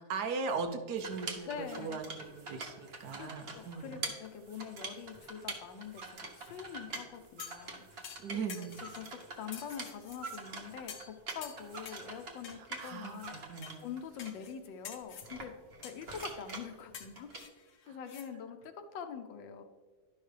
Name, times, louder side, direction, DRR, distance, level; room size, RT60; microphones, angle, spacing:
voice 1, 0.1-4.1 8.2-8.8 12.5-13.8 17.9-18.0, right 5 dB, 70° right, 6 dB, 1.2 m, -39 dB
sound 1, 1.0-14.3 15.2-17.4, right 3 dB, 40° right, 1.1 m, -45 dB
voice 2, 1.5-2.0 3.2-8.0 8.3-8.7 9.0-15.5 15.8-17.3 17.9-19.6, left 7 dB, 90° left, 7 dB, 1.5 m, -44 dB
sound 2, 7.4-7.7 8.0-9.1 9.5-10.4 10.9-11.1 11.4-12.1 12.4-12.9 13.6-13.8 14.2-14.5 14.8-15.3 15.8-16.4 16.9-18.3 18.6-18.7, left 7 dB, 55° left, 1.0 m, -48 dB
11.5 x 5.5 x 3.4 m, 1.4 s
omnidirectional pair, 1.9 m